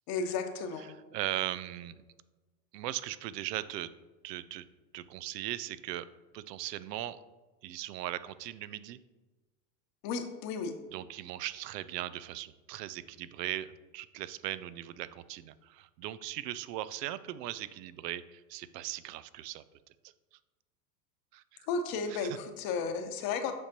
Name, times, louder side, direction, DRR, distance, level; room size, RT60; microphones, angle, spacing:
voice 1, 0.1-0.9 10.0-10.7 21.7-23.6, left 5 dB, 45° left, 7 dB, 1.0 m, -33 dB
voice 2, 1.1-2.0 2.7-3.9 4.2-4.6 4.9-6.1 6.3-7.2 7.6-9.0 10.9-19.6 20.0-20.1 21.3-21.7 22.1-22.4, right 14 dB, 75° right, 15 dB, 0.6 m, -39 dB
7.6 x 5.3 x 2.9 m, 1.2 s
hypercardioid pair, 95°, 49 cm